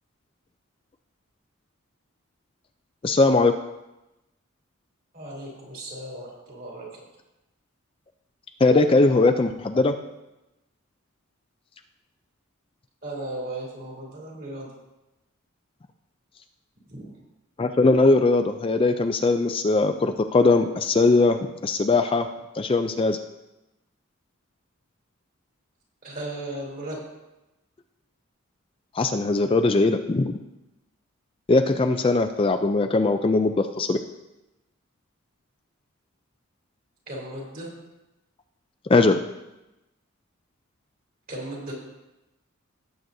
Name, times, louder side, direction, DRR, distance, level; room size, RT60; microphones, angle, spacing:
voice 1, 3.0-3.5 8.6-9.9 17.6-21.4 21.6-22.3 22.5-23.2 28.9-30.4 31.5-34.0 38.9-39.2, left 3 dB, 25° left, 7 dB, 0.4 m, -20 dB
voice 2, 5.1-7.0 13.0-14.7 16.9-17.1 26.0-27.0 37.1-37.7 41.3-41.7, right 1 dB, 45° right, -3 dB, 3.3 m, -36 dB
17.5 x 7.9 x 2.7 m, 0.98 s
head